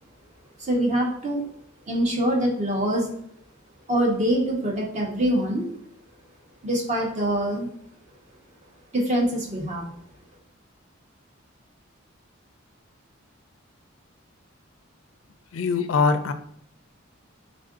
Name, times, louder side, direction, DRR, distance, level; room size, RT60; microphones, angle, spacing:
voice 1, 0.6-1.5 1.9-3.1 3.9-5.7 6.6-7.7 8.9-9.9, right 1 dB, 35° right, -1 dB, 0.9 m, -24 dB
voice 2, 15.5-16.3, left 4 dB, 70° left, 9 dB, 0.4 m, -22 dB
3.5 x 2.5 x 3.6 m, 0.69 s
head